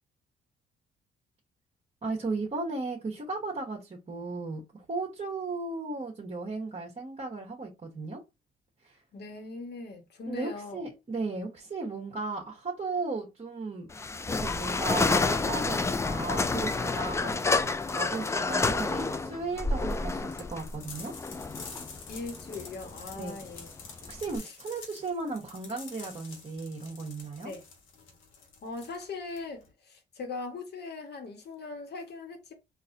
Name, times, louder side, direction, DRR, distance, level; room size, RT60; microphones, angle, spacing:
voice 1, 2.0-8.2 8.8-9.0 10.3-13.9 14.3-21.1 23.1-23.4 24.1-27.5, right 3 dB, 35° right, 1.2 m, -36 dB
voice 2, 9.1-10.8 22.1-23.7 24.4-24.5 27.4-27.6 28.6-32.5, left 3 dB, 55° left, 1.3 m, -40 dB
sound 1, 13.9-24.4, left 3 dB, 15° left, 0.3 m, -29 dB
sound 2, 20.3-29.7, left 5 dB, 80° left, 1.4 m, -48 dB
3.9 x 2.6 x 2.7 m
cardioid pair, 90°, 20 cm